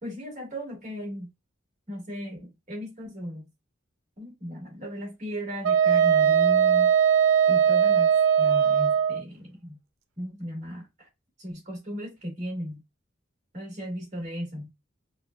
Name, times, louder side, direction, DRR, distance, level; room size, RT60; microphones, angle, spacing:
voice 1, 0.0-1.3 1.9-3.5 4.2-6.9 7.5-8.1 8.4-9.8 10.2-11.1 11.4-12.8 13.5-14.7, equal, 35° right, 1.6 m, -36 dB
Wind instrument woodwind instrument, 5.6-9.2, right 8 dB, 85° right, 0.4 m, -20 dB
3.5 x 2.2 x 2.2 m
head